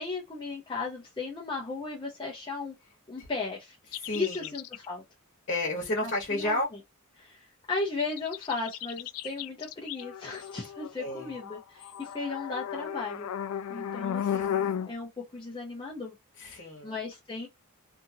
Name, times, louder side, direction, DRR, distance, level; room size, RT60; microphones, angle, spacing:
voice 1, 0.0-2.7 3.1-5.0 6.0-6.6 7.2-13.3 13.7-16.1 16.8-17.5, left 3 dB, 20° left, 0.7 m, -36 dB
sound 1, 3.9-4.9 8.0-14.9, left 9 dB, 80° left, 0.3 m, -35 dB
voice 2, 4.0-4.5 5.5-6.7 11.0-11.3 14.2-14.5 16.4-17.0, left 1 dB, 45° left, 1.2 m, -32 dB
2.7 x 2.5 x 2.7 m
head